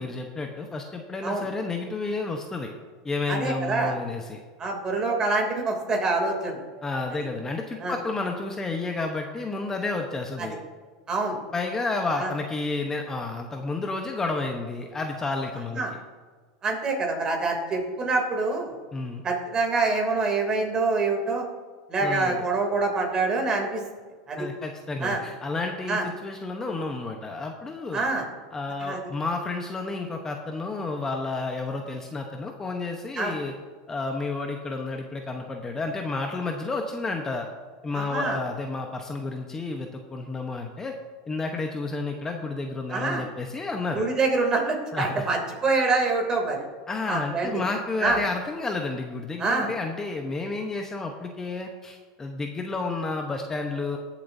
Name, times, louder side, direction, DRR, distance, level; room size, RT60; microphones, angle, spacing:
voice 1, 0.0-2.7 3.0-4.4 6.8-10.6 11.5-15.8 18.9-19.2 22.0-22.4 24.3-28.0 28.5-33.5 33.9-37.5 37.8-40.9 41.3-44.0 44.9-45.3 46.9-54.0, left 3 dB, 20° left, 3 dB, 1.0 m, -31 dB
voice 2, 3.3-4.0 4.6-6.6 7.8-8.0 10.4-10.5 11.1-11.4 12.2-12.3 15.7-15.9 16.6-18.7 19.2-21.5 21.9-23.8 24.3-24.5 25.0-25.2 25.9-26.0 27.9-28.3 28.8-29.0 33.2-33.3 37.9-38.4 42.9-43.2 43.9-46.6 47.1-47.5 48.0-48.2 49.4-49.7, right 3 dB, 30° right, 2 dB, 3.0 m, -25 dB
20.0 x 7.4 x 2.8 m, 1.5 s
hypercardioid pair, 105°, 3 cm